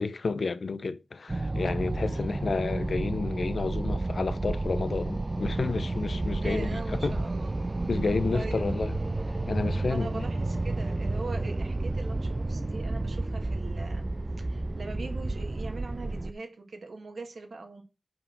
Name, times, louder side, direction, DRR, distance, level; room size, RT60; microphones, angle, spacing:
voice 1, 0.0-7.2 7.9-8.9 9.5-10.2, left 4 dB, 70° left, 0.6 m, -31 dB
sound 1, 1.3-16.3, right 2 dB, 30° right, 0.3 m, -31 dB
voice 2, 2.0-2.3 6.1-7.6 8.3-8.8 9.9-14.1 14.4-17.8, right 3 dB, 75° right, 2.0 m, -41 dB
5.6 x 4.8 x 6.4 m
wide cardioid pair, 80°, 0 cm